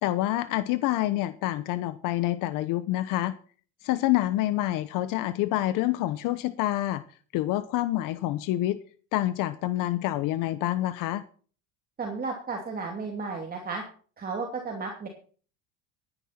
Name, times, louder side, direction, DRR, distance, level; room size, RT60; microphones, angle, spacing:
voice 1, 0.0-3.4 3.8-7.0 7.3-8.8 9.1-11.2, left 15 dB, 65° left, 14 dB, 0.9 m, -27 dB
voice 2, 12.0-13.8 14.2-15.1, right 4 dB, 25° right, 1 dB, 2.7 m, -33 dB
16.0 x 10.0 x 4.4 m, 0.42 s
supercardioid pair, 110°, 34 cm